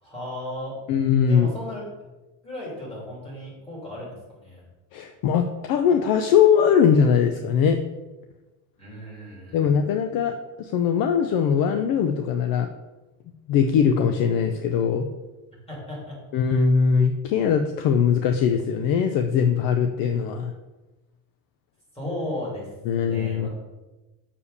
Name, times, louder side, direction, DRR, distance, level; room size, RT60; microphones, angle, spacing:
voice 1, 0.0-0.7 1.3-1.8 2.4-4.6 8.8-9.6 15.7-16.2 16.5-16.6 21.9-23.5, left 1 dB, 15° left, -5 dB, 2.9 m, -35 dB
voice 2, 0.9-1.5 4.9-7.8 9.5-12.7 13.5-15.1 16.3-20.5 22.9-23.5, left 7 dB, 50° left, 7 dB, 0.6 m, -21 dB
6.9 x 5.0 x 6.6 m, 1.1 s
cardioid pair, 170°, 44 cm